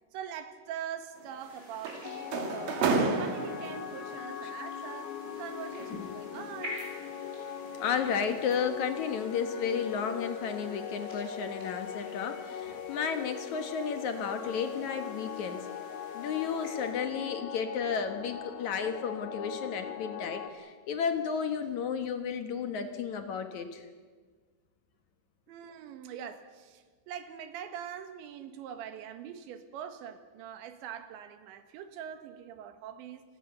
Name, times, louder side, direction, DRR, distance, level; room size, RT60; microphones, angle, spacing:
voice 1, 0.1-5.1 5.4-6.8 25.5-33.2, right 9 dB, 80° right, 8 dB, 3.8 m, -43 dB
sound 1, 1.2-4.1 5.2-7.2 7.6-7.9 8.3-8.5, right 4 dB, 55° right, 3.3 m, -32 dB
sound 2, 1.4-16.9, left 1 dB, 10° right, 6.8 m, -51 dB
sound 3, 2.0-20.5, left 8 dB, 75° left, 3.7 m, -41 dB
voice 2, 7.8-15.7 16.1-23.9, left 6 dB, 60° left, 7 dB, 2.1 m, -33 dB
28.0 x 19.5 x 6.9 m, 1.5 s
omnidirectional pair, 5.2 m